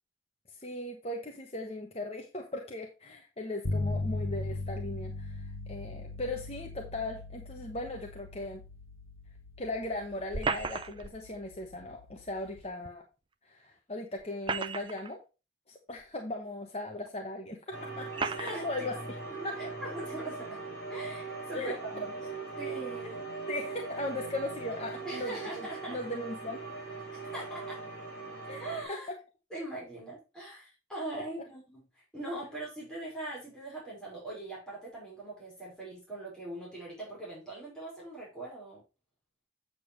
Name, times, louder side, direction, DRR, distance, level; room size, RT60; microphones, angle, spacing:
voice 1, 0.5-8.6 9.6-13.0 13.4-15.2 15.7-18.1 18.3-19.0 19.4-19.6 21.5-21.7 23.0-23.2 23.5-26.6 28.5-28.6 28.9-29.0, left 1 dB, 30° left, 2 dB, 1.1 m, -38 dB
sound 1, 3.6-12.6, left 2 dB, 85° left, 1.7 m, -39 dB
sound 2, 10.3-11.2 12.9-13.0 14.2-15.1 16.0-16.1 17.1-17.2 18.1-18.6, right 4 dB, 25° right, 0.5 m, -34 dB
sound 3, 17.7-28.9, right 4 dB, 60° left, 5.4 m, -40 dB
voice 2, 18.2-18.9 19.5-20.6 20.9-22.1 22.5-23.2 25.0-26.0 27.3-27.8 28.6-29.1 29.5-38.8, right 2 dB, 5° left, -6 dB, 5.1 m, -41 dB
8.6 x 6.9 x 3.2 m, 0.30 s
head